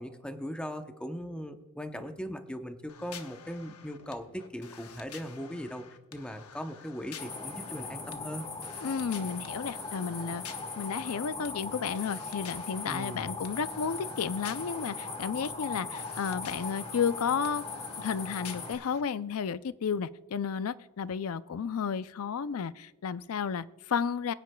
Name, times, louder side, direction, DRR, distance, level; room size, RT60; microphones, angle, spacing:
voice 1, 0.0-5.8 6.1-8.5 12.9-13.4, equal, 5° left, 7 dB, 0.8 m, -39 dB
sound 1, 2.9-19.0, left 7 dB, 90° left, 1.0 m, -50 dB
sound 2, 7.2-18.7, left 3 dB, 30° left, 2.0 m, -39 dB
voice 2, 8.8-10.4 10.8-17.6 18.0-24.3, left 6 dB, 70° left, 16 dB, 0.4 m, -32 dB
22.0 x 9.3 x 2.3 m, 1.1 s
head